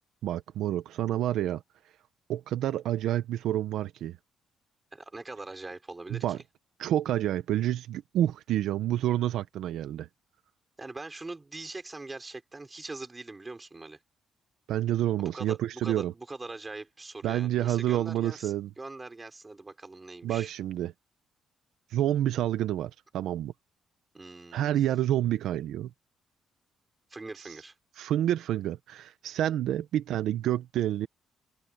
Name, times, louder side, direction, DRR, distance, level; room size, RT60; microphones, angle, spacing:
voice 1, 0.2-1.6 2.3-4.2 6.1-6.4 6.8-10.1 14.7-16.1 17.2-18.7 20.2-20.9 21.9-23.5 24.5-25.9 28.0-31.1, right 12 dB, 80° right, 1.0 m, -28 dB
voice 2, 4.9-6.4 10.8-14.0 15.2-20.5 24.1-24.7 27.1-27.7, right 3 dB, 20° right, 6.1 m, -42 dB
cardioid pair, 90°, 0 cm